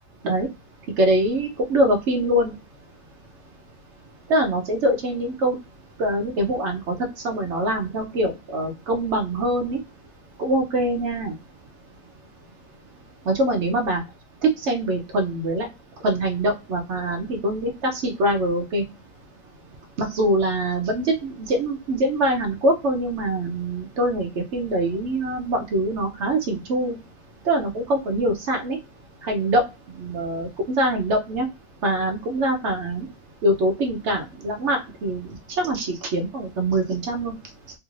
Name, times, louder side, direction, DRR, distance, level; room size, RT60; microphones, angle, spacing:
voice 1, 1.0-2.5 4.3-5.6 6.0-6.9 7.2-9.8 10.4-11.3 13.3-14.0 14.4-15.7 16.0-18.8 20.0-27.0 27.4-28.8 29.2-29.6 30.0-31.5 31.8-33.1 33.4-35.3 35.6-37.3, right 1 dB, 70° right, 3 dB, 0.6 m, -23 dB
3.4 x 3.1 x 2.4 m, 0.25 s
omnidirectional pair, 1.9 m